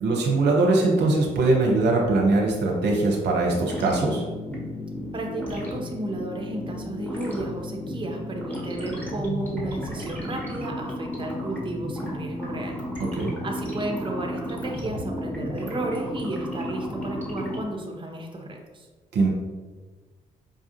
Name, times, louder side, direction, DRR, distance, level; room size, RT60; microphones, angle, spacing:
voice 1, 0.0-4.2 13.1-13.3 19.1-19.3, right 2 dB, 60° right, -1 dB, 0.7 m, -21 dB
sound 1, 3.5-17.6, left 1 dB, 5° left, 1.5 m, -33 dB
voice 2, 5.1-12.8 13.4-18.9, right 2 dB, 25° right, 1 dB, 0.8 m, -33 dB
5.1 x 2.3 x 2.8 m, 1.3 s
hypercardioid pair, 45°, 20 cm